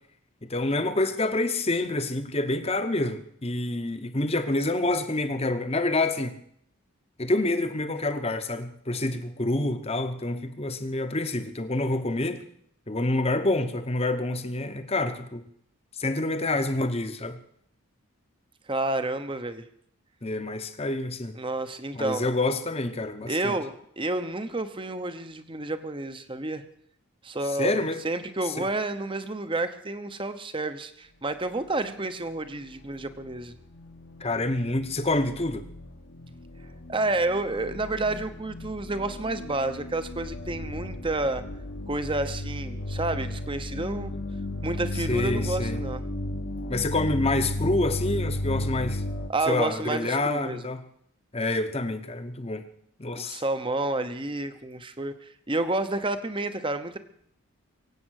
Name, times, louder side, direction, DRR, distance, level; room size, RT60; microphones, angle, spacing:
voice 1, 0.4-6.3 7.2-12.4 12.9-15.4 16.0-17.4 20.2-21.3 21.9-23.6 27.6-28.0 28.6-28.7 34.2-35.6 45.1-45.8 46.7-49.0 49.5-50.8 51.3-52.6 53.0-53.4, left 2 dB, 25° left, 9 dB, 1.0 m, -27 dB
voice 2, 18.7-19.6 21.4-22.3 23.3-26.6 27.2-33.5 36.9-41.4 41.9-44.1 44.6-46.0 49.3-50.7 53.2-57.0, right 2 dB, 25° right, 10 dB, 0.9 m, -30 dB
sound 1, 32.9-49.3, left 1 dB, 55° left, 1.1 m, -34 dB
23.5 x 8.6 x 6.5 m, 0.70 s
head